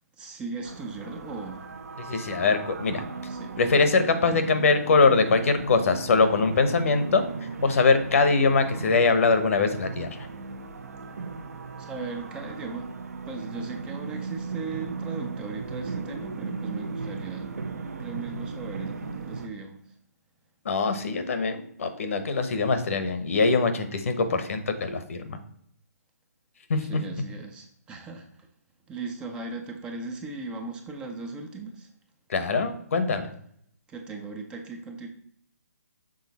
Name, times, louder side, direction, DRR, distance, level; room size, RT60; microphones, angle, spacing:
voice 1, 0.2-1.7 3.3-3.6 11.8-12.9 13.3-17.6 18.0-19.9 26.8-28.5 28.9-31.9 33.9-35.1, right 3 dB, 10° right, 3 dB, 0.4 m, -38 dB
sound 1, 0.6-19.5, right 4 dB, 65° right, 0.8 m, -36 dB
voice 2, 2.0-3.0 3.6-7.2 7.6-10.3 20.6-25.4 26.7-26.8 32.3-33.3, left 4 dB, 55° left, 9 dB, 0.9 m, -23 dB
6.3 x 3.9 x 4.1 m, 0.67 s
hypercardioid pair, 150°, 9 cm